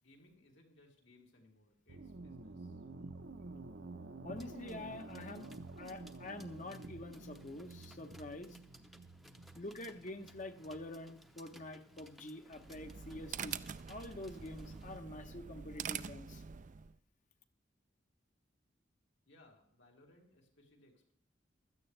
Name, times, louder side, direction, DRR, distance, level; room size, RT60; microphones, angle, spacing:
voice 1, 0.0-2.8 19.2-21.1, left 2 dB, 75° left, -1 dB, 3.2 m, -65 dB
sound 1, 1.9-13.4, right 3 dB, 70° right, 1.0 m, -51 dB
voice 2, 4.2-5.5 5.8-8.6 9.5-13.6 13.9-16.4, left 2 dB, 45° left, 7 dB, 1.1 m, -47 dB
sound 2, 4.4-15.0, equal, ahead, 0.8 m, -63 dB
sound 3, 12.5-17.0, right 7 dB, 45° right, 0.4 m, -45 dB
16.0 x 13.0 x 3.4 m, 0.67 s
head